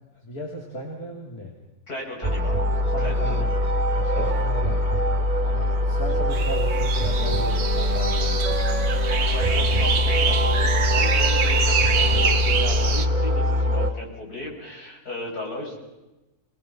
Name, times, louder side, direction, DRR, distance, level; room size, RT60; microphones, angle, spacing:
voice 1, 0.1-1.5 2.7-3.6 3.9-4.8 5.5-8.6 9.6-9.7, equal, 75° left, -1 dB, 3.5 m, -36 dB
voice 2, 1.9-2.6 3.0-3.6 4.1-4.4 5.5-5.8 6.1-6.3 9.2-15.8, left 2 dB, 90° left, -1 dB, 6.2 m, -36 dB
sound 1, 2.2-13.9, left 1 dB, 20° right, 1.7 m, -22 dB
Wind instrument woodwind instrument, 6.0-14.0, left 1 dB, 55° left, 2.5 m, -39 dB
sound 2, 6.3-13.1, right 6 dB, 80° right, 1.8 m, -26 dB
28.0 x 20.5 x 5.9 m, 1.0 s
omnidirectional pair, 1.6 m